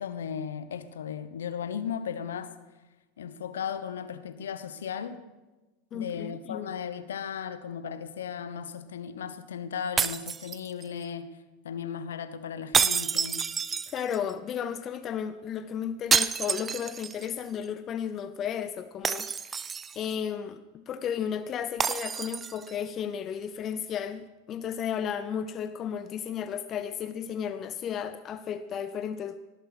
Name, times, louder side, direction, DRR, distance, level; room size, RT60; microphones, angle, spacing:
voice 1, 0.0-2.5 3.2-5.2 5.9-11.3 11.6-13.5, left 7 dB, 85° left, 12 dB, 1.0 m, -36 dB
voice 2, 5.9-6.7 13.9-19.7 19.9-29.4, left 8 dB, 35° left, 12 dB, 0.6 m, -34 dB
sound 1, 10.0-11.0 12.7-14.3 16.1-17.3 17.6-17.7 19.0-20.1 21.8-22.7, right 6 dB, 25° right, 0.4 m, -28 dB
18.5 x 8.2 x 6.1 m, 1.1 s
hypercardioid pair, 105°, 0 cm